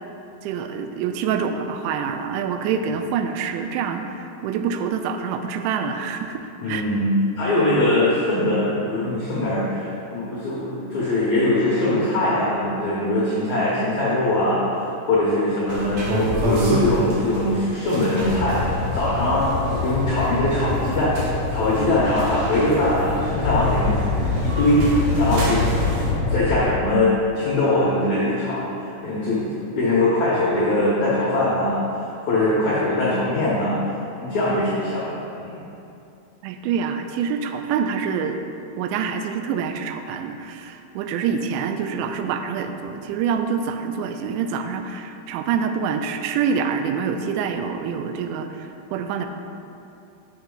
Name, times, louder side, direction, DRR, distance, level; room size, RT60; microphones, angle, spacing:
voice 1, 0.4-6.8 36.4-38.4 38.8-49.3, right 6 dB, 85° right, 7 dB, 2.8 m, -26 dB
voice 2, 6.6-7.1 7.4-18.6 18.9-21.1 21.5-25.6 26.3-29.4 29.7-33.8 34.2-35.6, left 1 dB, 80° left, -7 dB, 1.6 m, -22 dB
sound 1, 15.7-26.1, equal, 70° right, 2.9 m, -29 dB
sound 2, 18.2-26.6, left 3 dB, 50° left, 2.6 m, -25 dB
8.0 x 6.6 x 3.8 m, 2.7 s
omnidirectional pair, 5.1 m